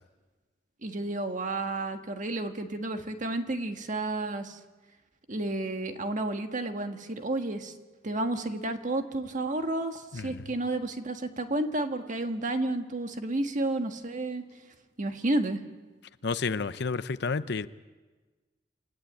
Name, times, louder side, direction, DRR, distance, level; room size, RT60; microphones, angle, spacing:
voice 1, 0.8-4.6 5.3-7.7 8.0-14.4 15.0-15.6, right 2 dB, 45° right, 6 dB, 1.6 m, -31 dB
voice 2, 10.1-10.4 16.2-17.7, left 4 dB, 60° left, 13 dB, 0.7 m, -30 dB
28.0 x 15.0 x 8.9 m, 1.3 s
head